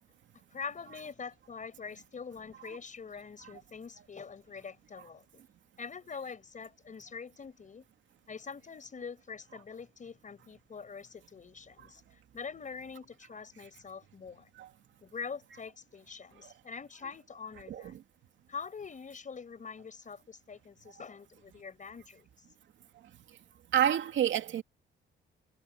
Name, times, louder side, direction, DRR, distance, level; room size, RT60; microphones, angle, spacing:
voice 1, 0.5-5.4 5.8-7.9 8.3-14.5 15.0-18.0 18.5-22.5, left 5 dB, 40° left, 5.6 m, -44 dB
voice 2, 23.7-24.6, right 10 dB, 70° right, 2.6 m, -28 dB
cardioid pair, 90°, 20 cm